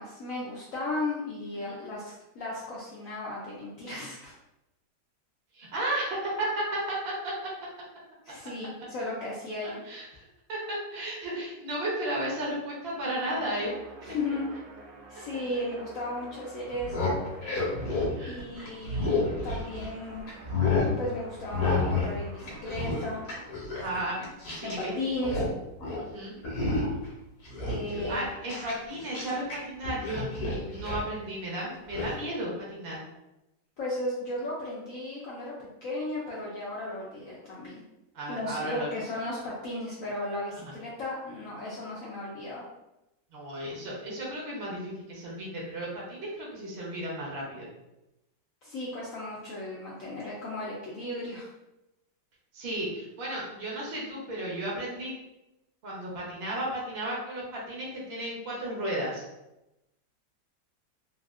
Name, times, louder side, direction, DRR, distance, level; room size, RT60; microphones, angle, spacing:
voice 1, 0.0-4.3 8.2-9.8 14.0-14.5 15.1-17.1 18.3-19.2 19.4-20.2 21.0-23.2 24.6-25.4 27.7-28.3 33.8-37.8 38.3-42.6 48.6-51.5, left 2 dB, 75° left, -6 dB, 0.8 m, -35 dB
voice 2, 5.5-7.0 7.2-7.3 9.8-14.1 18.1-18.4 23.8-24.3 24.6-24.9 26.0-26.4 27.9-33.0 38.1-38.9 40.6-40.7 43.3-47.7 52.5-55.1 55.8-59.2, right 1 dB, 50° right, -5 dB, 0.8 m, -34 dB
sound 1, 12.5-23.6, right 2 dB, 70° right, 1.1 m, -49 dB
sound 2, 16.7-19.9 20.3-20.9 21.5-22.1 22.4-24.8 25.1-25.5 25.8-26.0 26.4-27.1 27.4-29.6 29.8-31.1 31.9-32.1, left 3 dB, 55° left, 1.1 m, -30 dB
3.4 x 2.3 x 2.4 m, 0.92 s
omnidirectional pair, 2.0 m